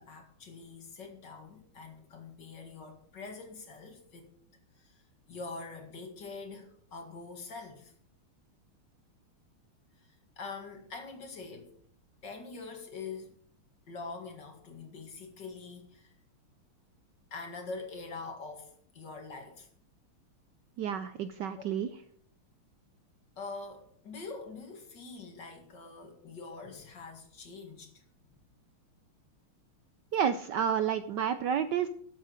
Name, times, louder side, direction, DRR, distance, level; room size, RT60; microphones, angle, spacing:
voice 1, 0.0-4.3 4.8-4.9 5.3-7.9 10.4-11.7 12.2-13.3 13.9-16.1 17.3-19.7 23.4-28.0, left 4 dB, 55° left, 4 dB, 2.6 m, -44 dB
voice 2, 20.8-21.9 30.1-31.9, right 8 dB, 70° right, 11 dB, 1.1 m, -30 dB
13.0 x 7.4 x 6.4 m, 0.62 s
omnidirectional pair, 2.4 m